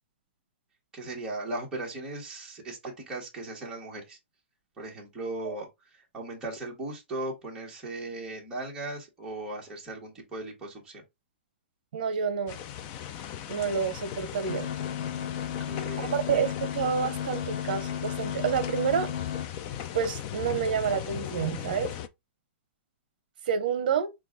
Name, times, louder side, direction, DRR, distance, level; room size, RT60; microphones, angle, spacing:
voice 1, 0.9-4.2 4.8-11.0 15.7-16.5, right 2 dB, 10° right, 1.4 m, -38 dB
voice 2, 11.9-12.6 13.5-14.7 16.0-19.1 19.9-21.9 23.5-24.1, right 7 dB, 50° right, 1.0 m, -28 dB
sound 1, 12.5-22.1, left 10 dB, 20° left, 0.3 m, -38 dB
sound 2, 14.5-19.5, left 9 dB, 70° left, 0.9 m, -34 dB
5.9 x 2.4 x 3.6 m
hypercardioid pair, 175°, 6 cm